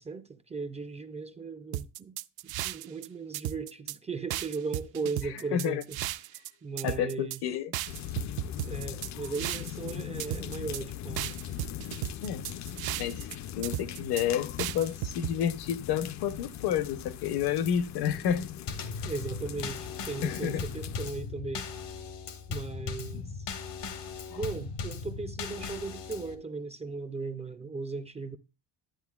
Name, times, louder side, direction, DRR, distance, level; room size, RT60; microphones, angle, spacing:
voice 1, 0.0-2.2 2.4-6.0 6.6-7.4 8.6-11.3 19.0-21.7 22.5-23.5 24.3-28.4, right 4 dB, 15° right, 0.4 m, -37 dB
sound 1, 1.7-3.1 3.3-4.0 4.3-6.5 6.8-7.4 7.7-9.9 10.2-10.8 11.2-13.3 13.6-14.2 14.6-15.3, right 15 dB, 65° right, 0.6 m, -35 dB
voice 2, 5.2-5.8 6.8-7.7 12.2-12.5 13.0-13.3 13.6-18.5 19.0-19.1 20.2-20.6 23.1-23.2 24.3-24.4, left 9 dB, 70° left, 0.9 m, -30 dB
sound 2, 7.9-21.1, left 11 dB, 45° left, 0.5 m, -40 dB
Drum kit / Snare drum / Bass drum, 18.7-26.4, left 4 dB, 90° left, 1.8 m, -38 dB
11.5 x 8.9 x 2.3 m
cardioid pair, 155°, 41 cm